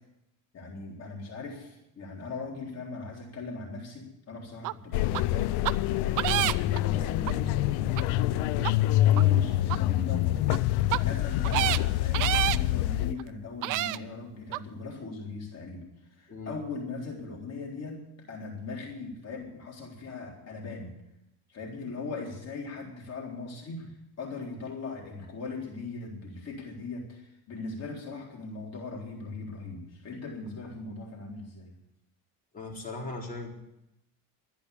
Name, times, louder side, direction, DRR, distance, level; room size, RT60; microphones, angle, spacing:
voice 1, 0.5-5.5 5.9-8.5 9.0-10.4 11.0-15.9 16.1-18.0 18.3-20.9 21.5-31.7, left 3 dB, 40° left, -1 dB, 3.9 m, -39 dB
sound 1, 4.6-4.7 5.1-5.2 5.6-5.7 6.2-6.8 7.3-7.4 8.0-8.1 8.6-8.7 9.2-9.3 9.7-9.8 10.4-10.6 10.9-11.0 11.4-11.8 12.1-12.6 13.2-13.3 13.6-14.0 14.5-14.6, right 16 dB, 50° right, 0.5 m, -28 dB
sound 2, 4.9-13.1, left 14 dB, 75° left, 0.6 m, -26 dB
voice 2, 32.5-33.5, left 2 dB, 20° left, -2 dB, 4.2 m, -38 dB
12.5 x 10.0 x 8.2 m, 0.86 s
cardioid pair, 130°, 40 cm